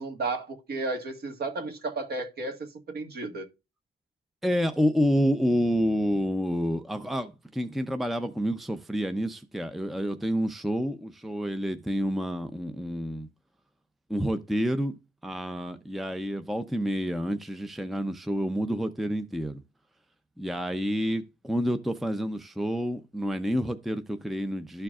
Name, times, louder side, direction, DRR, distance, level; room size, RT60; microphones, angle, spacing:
voice 1, 0.0-3.5, right 3 dB, 50° right, 1.6 m, -33 dB
voice 2, 4.4-13.3 14.1-15.0 15.2-19.6 20.4-24.8, equal, ahead, 0.5 m, -28 dB
12.5 x 4.5 x 2.4 m
cardioid pair, 90°, 20 cm